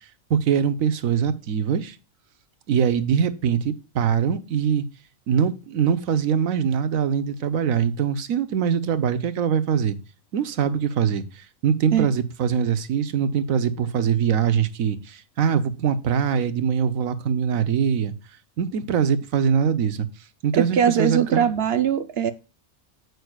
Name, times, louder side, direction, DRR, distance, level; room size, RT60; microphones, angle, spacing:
voice 1, 0.3-2.0 2.7-4.9 5.3-10.0 10.3-18.1 18.6-20.1 20.4-21.5, right 7 dB, 70° right, 1.3 m, -23 dB
voice 2, 20.5-22.3, right 8 dB, 55° right, 0.8 m, -21 dB
9.1 x 8.1 x 2.3 m
omnidirectional pair, 1.5 m